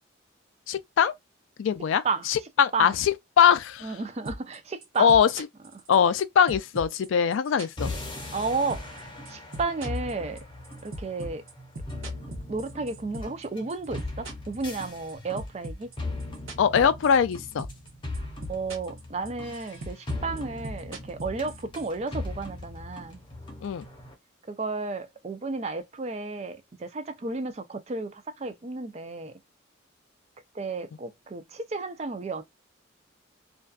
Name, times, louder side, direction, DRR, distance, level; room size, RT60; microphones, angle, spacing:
voice 1, 0.7-1.1 1.6-4.0 5.0-5.5 5.9-7.9 16.6-17.7 23.6-23.8, left 7 dB, 75° left, 0.3 m, -22 dB
voice 2, 3.8-5.1 8.3-10.4 10.8-11.4 12.5-15.9 18.2-23.2 24.5-29.3 30.5-32.4, right 3 dB, 30° right, 0.4 m, -33 dB
sound 1, 4.2-4.6 4.8-6.2 6.5-8.4 8.7-9.0 9.2-13.4 13.7-15.1 15.4-17.3 17.6-17.9 18.1-19.0 19.2-21.9, right 1 dB, 90° right, 0.8 m, -38 dB
sound 2, 7.8-24.1, left 2 dB, 25° left, 0.7 m, -39 dB
2.5 x 2.2 x 2.3 m
head